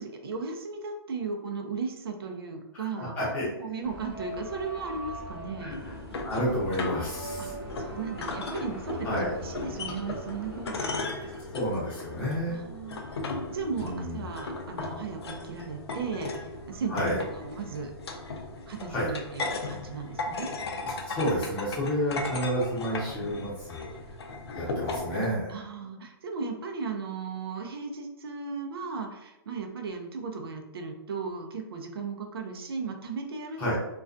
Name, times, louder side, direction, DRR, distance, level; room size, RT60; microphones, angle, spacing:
voice 1, 0.0-3.1 3.6-5.7 7.4-7.5 7.8-11.3 12.5-13.0 13.5-16.3 16.7-17.9 18.7-20.5 25.5-33.8, right 5 dB, 65° right, 3 dB, 0.5 m, -36 dB
voice 2, 2.8-3.5 5.6-5.9 6.2-7.5 9.0-9.4 11.2-11.3 11.5-12.6 13.7-14.3 16.9-17.2 18.9-19.1 20.8-23.9 24.5-25.5 33.6-33.8, equal, 10° left, -9 dB, 0.8 m, -30 dB
sound 1, 3.8-11.0, equal, 10° right, 0.4 m, -42 dB
sound 2, 5.7-25.3, left 3 dB, 80° left, 0.5 m, -37 dB
2.3 x 2.2 x 2.4 m, 0.94 s
hypercardioid pair, 170°, 13 cm